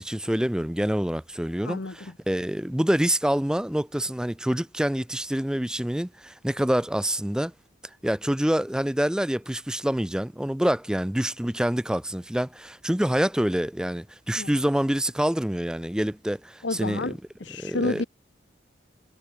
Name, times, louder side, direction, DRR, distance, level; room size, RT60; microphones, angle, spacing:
voice 1, 0.0-7.5 8.0-17.2 17.6-18.0, equal, 5° right, 0.4 m, -26 dB
voice 2, 1.6-2.1 14.4-14.5 16.6-17.1 17.4-18.0, left 3 dB, 65° left, 1.0 m, -30 dB
head